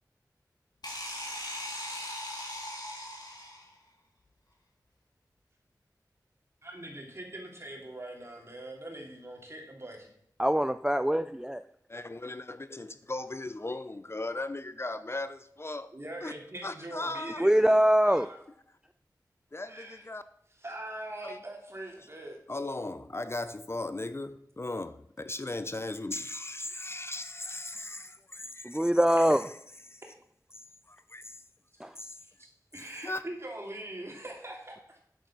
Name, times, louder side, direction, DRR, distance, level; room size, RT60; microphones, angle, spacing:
sound 1, 0.8-3.7, left 1 dB, 80° left, 3.9 m, -39 dB
voice 1, 6.6-10.1 15.9-18.4 19.7-20.0 20.6-22.4 32.4-35.0, right 1 dB, 40° right, 3.3 m, -42 dB
voice 2, 10.4-11.6 17.4-18.3 28.6-29.4 31.8-31.9, equal, 10° right, 0.4 m, -23 dB
voice 3, 11.9-15.9 16.2-16.3 16.6-17.4 19.5-20.2 21.2-21.4 22.0-22.1 22.5-28.9 29.3-29.4 29.9-30.0 30.5-31.4 32.0-32.2 32.8-33.2, left 2 dB, 35° left, 0.6 m, -38 dB
8.9 x 7.9 x 6.0 m
wide cardioid pair, 55°, 7 cm